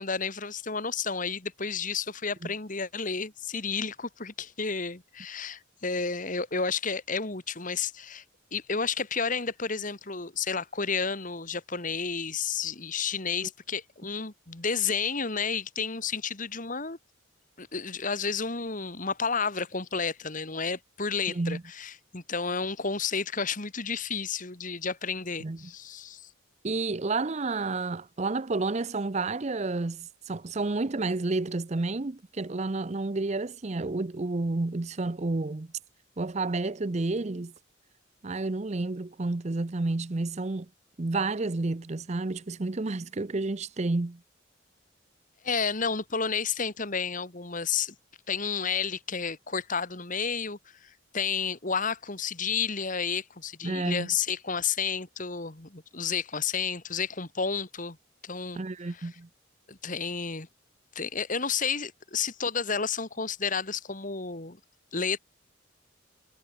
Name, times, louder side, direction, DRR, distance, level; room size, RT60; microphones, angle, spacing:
voice 1, 0.0-8.2 8.5-17.0 17.6-26.3 45.4-47.9 48.3-58.0 58.2-58.6 58.9-59.1 59.7-60.5 61.0-64.6 64.9-65.2, left 5 dB, 40° left, 2.0 m, -31 dB
voice 2, 21.3-21.6 25.4-25.7 26.6-35.7 36.2-37.5 38.2-40.7 41.0-44.2 53.6-54.1 58.6-59.3, right 3 dB, 35° right, 0.6 m, -30 dB
head